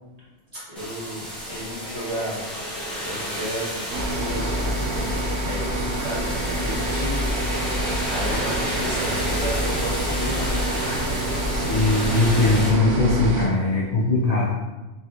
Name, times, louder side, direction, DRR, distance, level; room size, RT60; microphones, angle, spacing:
voice 1, 0.7-2.5 3.0-7.3 8.1-10.5 10.8-11.3, equal, 35° right, -10 dB, 1.5 m, -33 dB
sound 1, 0.8-12.7, equal, ahead, 0.6 m, -31 dB
sound 2, 3.9-13.5, right 1 dB, 85° right, 1.0 m, -27 dB
voice 2, 11.5-14.5, left 2 dB, 65° left, -5 dB, 0.4 m, -20 dB
3.2 x 2.7 x 2.4 m, 1.1 s
omnidirectional pair, 1.2 m